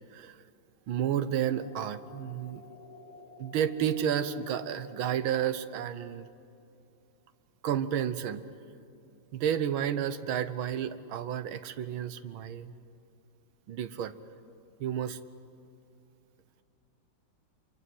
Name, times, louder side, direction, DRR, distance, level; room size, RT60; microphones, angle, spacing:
voice 1, 0.9-2.6 3.4-6.3 7.6-8.4 9.3-12.7 13.7-14.1 14.8-15.2, right 9 dB, 85° right, 12 dB, 1.8 m, -31 dB
sound 1, 1.5-5.5, left 3 dB, 85° left, 3.8 m, -51 dB
26.5 x 24.0 x 7.8 m, 2.7 s
omnidirectional pair, 2.2 m